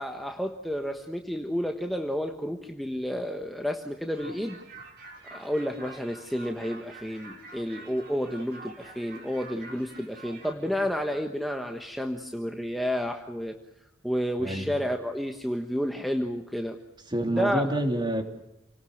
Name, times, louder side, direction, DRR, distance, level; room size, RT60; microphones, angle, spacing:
voice 1, 0.0-4.6 5.3-13.6 14.0-16.8 17.2-17.7, equal, ahead, 3 dB, 1.2 m, -31 dB
sound 1, 4.1-10.5, right 3 dB, 55° right, 6.0 m, -47 dB
voice 2, 14.4-14.8 17.1-18.2, right 1 dB, 25° right, 5 dB, 2.9 m, -27 dB
29.0 x 19.0 x 6.5 m, 0.90 s
head